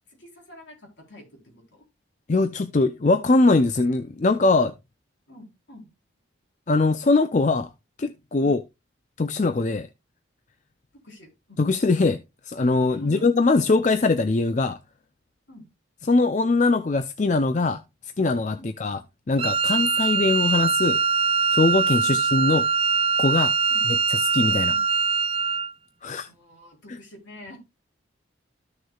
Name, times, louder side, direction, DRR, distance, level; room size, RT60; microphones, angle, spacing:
voice 1, 0.0-1.8 5.3-5.9 8.4-8.5 11.0-11.7 12.9-13.2 15.5-15.7 18.6-18.7 22.0-22.2 23.7-23.8 24.7-24.8 26.3-27.6, left 1 dB, 65° left, 4.0 m, -46 dB
voice 2, 2.3-4.7 6.7-7.7 8.0-8.6 9.2-9.9 11.6-12.2 12.4-14.8 16.1-19.0 19.3-21.0 21.5-22.7 23.2-23.5 23.9-24.0 24.3-24.7 26.0-26.3, left 3 dB, 35° left, 0.5 m, -21 dB
Wind instrument woodwind instrument, 19.4-25.7, right 5 dB, 30° right, 0.4 m, -22 dB
13.5 x 6.4 x 2.3 m
head